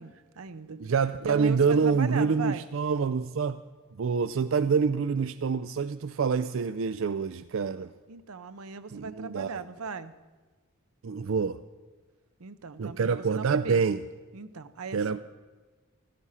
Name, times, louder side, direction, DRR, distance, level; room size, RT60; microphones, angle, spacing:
voice 1, 0.0-0.8 1.2-2.6 8.1-10.1 12.4-13.8 14.3-15.2, right 4 dB, 85° right, 13 dB, 0.7 m, -37 dB
voice 2, 0.7-3.6 4.0-7.9 8.9-9.6 11.0-11.6 12.8-14.0 14.9-15.2, right 5 dB, 65° right, 13 dB, 0.4 m, -26 dB
15.5 x 13.0 x 5.6 m, 1.3 s
head